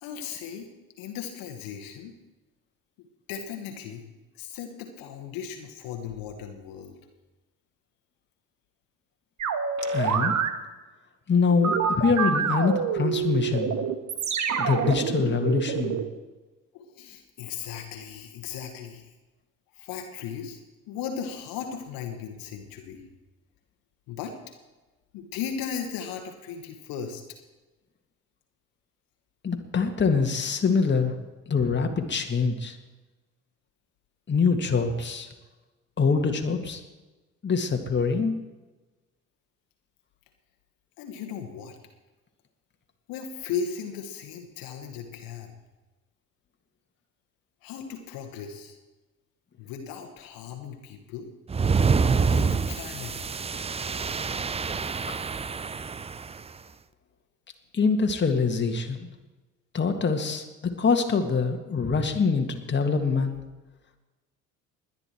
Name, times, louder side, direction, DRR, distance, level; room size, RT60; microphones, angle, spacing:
voice 1, 0.0-0.7 1.0-2.1 3.0-4.0 4.3-7.0 11.9-12.1 16.7-19.1 19.7-20.6 20.9-23.1 24.1-24.3 25.1-27.2 41.0-41.8 43.1-45.6 47.6-48.8 49.6-51.3 52.2-53.2, left 7 dB, 60° left, 4 dB, 1.7 m, -37 dB
sound 1, 9.4-10.5 11.6-16.0, right 6 dB, 45° right, 1.4 m, -27 dB
voice 2, 9.9-10.3 11.3-13.8 14.6-16.0 29.4-31.1 31.5-32.8 34.3-35.3 36.0-36.8 37.4-38.4 55.1-55.2 57.7-59.1 59.7-63.4, left 5 dB, 30° left, 4 dB, 1.9 m, -24 dB
sound 2, 51.5-56.4, right 5 dB, 15° right, 0.6 m, -26 dB
21.0 x 9.9 x 4.6 m, 1.2 s
figure-of-eight pair, 50°, 39 cm